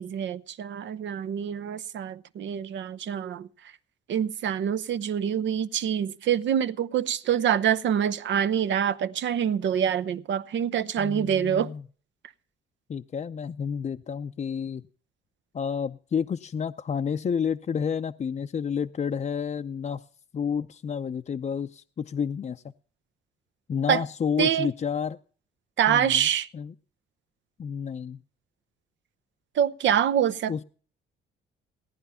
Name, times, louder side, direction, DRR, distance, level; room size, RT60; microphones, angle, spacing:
voice 1, 0.0-3.5 4.1-11.7 23.9-24.0 24.4-24.7 25.8-26.5 29.6-30.6, right 9 dB, 70° right, 0.8 m, -26 dB
voice 2, 11.0-11.8 12.9-14.8 15.5-20.0 20.3-22.6 23.7-25.2 25.9-26.3 26.5-26.7 27.6-28.2 30.5-30.6, left 7 dB, 35° left, 0.6 m, -30 dB
17.5 x 10.5 x 5.6 m
cardioid pair, 90°, 20 cm